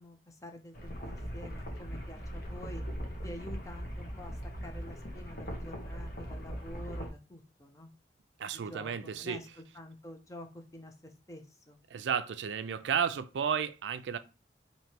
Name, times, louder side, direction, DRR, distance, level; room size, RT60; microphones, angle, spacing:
voice 1, 0.0-2.8 3.2-4.4 4.6-7.9 8.5-11.8, left 1 dB, 15° left, 0.6 m, -48 dB
sound 1, 0.7-7.1, equal, 50° left, 1.0 m, -40 dB
voice 2, 8.4-9.4 11.9-14.2, right 7 dB, 80° right, 0.4 m, -32 dB
3.1 x 2.8 x 4.4 m
head